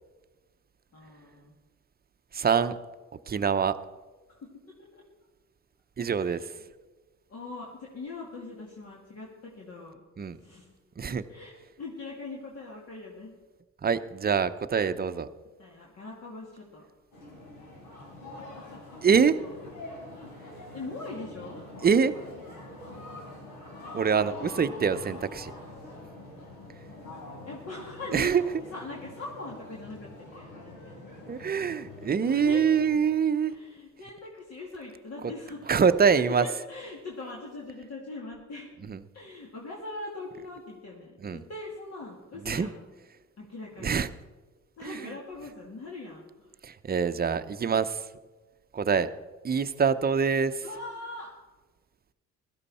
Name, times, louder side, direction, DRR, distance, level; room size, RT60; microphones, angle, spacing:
voice 1, 0.9-1.6 4.3-4.5 4.8-5.0 6.0-6.6 7.3-10.0 10.4-10.8 11.3-13.3 15.6-16.8 20.7-21.6 24.4-24.8 27.5-28.4 28.7-31.0 32.3-32.6 33.5-38.8 39.1-42.9 43.4-44.1 44.8-46.5 50.6-51.3, left 3 dB, 55° left, -3 dB, 2.4 m, -41 dB
voice 2, 2.3-2.7 3.3-3.7 6.0-6.5 10.2-10.4 11.0-11.2 13.8-15.3 19.0-19.4 21.8-22.1 23.9-25.5 28.1-28.4 31.3-33.5 35.7-36.4 38.9-39.0 41.2-41.4 42.4-42.7 43.8-44.1 44.8-45.1 46.6-48.1 48.7-49.1 49.4-50.6, right 6 dB, 30° right, 11 dB, 0.7 m, -25 dB
sound 1, 17.1-33.0, left 2 dB, 90° left, 4.4 m, -45 dB
16.5 x 13.0 x 4.2 m, 1.3 s
cardioid pair, 90°, 30 cm